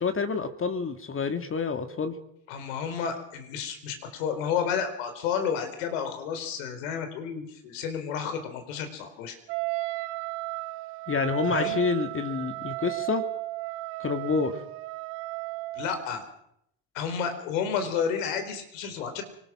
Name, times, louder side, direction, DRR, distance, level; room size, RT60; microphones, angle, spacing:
voice 1, 0.0-2.1 11.1-13.2 14.0-14.5, left 5 dB, 35° left, 7 dB, 2.4 m, -28 dB
voice 2, 2.5-9.4 11.5-11.8 15.7-16.2 16.9-19.2, left 7 dB, 80° left, 7 dB, 4.4 m, -31 dB
Wind instrument woodwind instrument, 9.5-16.1, right 20 dB, 80° right, 1.1 m, -34 dB
25.0 x 19.5 x 6.1 m, 0.75 s
hypercardioid pair, 75°, 38 cm